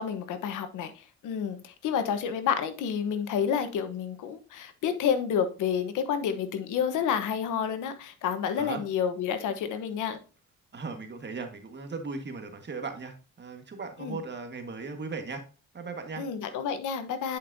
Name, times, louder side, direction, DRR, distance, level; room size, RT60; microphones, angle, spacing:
voice 1, 0.0-10.2 14.0-14.2 16.2-17.4, left 7 dB, 85° left, 1.1 m, -29 dB
voice 2, 10.7-15.5 15.7-16.3, right 4 dB, 35° right, 1.6 m, -37 dB
10.0 x 5.4 x 2.7 m
cardioid pair, 90°, 30 cm